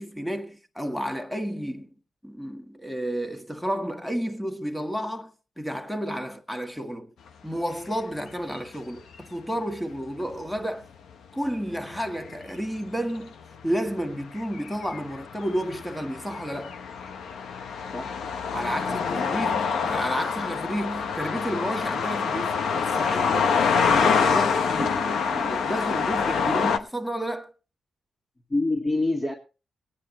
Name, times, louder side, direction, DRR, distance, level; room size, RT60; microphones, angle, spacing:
voice 1, 0.0-1.9 2.2-7.1 7.4-10.8 11.3-13.3 13.6-16.8 18.5-23.5 23.8-27.5, equal, 5° left, 1.7 m, -31 dB
sound 1, 10.2-10.6 11.8-12.9 13.5-26.8, left 6 dB, 85° left, 0.9 m, -26 dB
voice 2, 18.7-19.3 28.5-29.3, left 2 dB, 25° left, 1.9 m, -27 dB
19.0 x 9.7 x 3.0 m
cardioid pair, 65°, 0 cm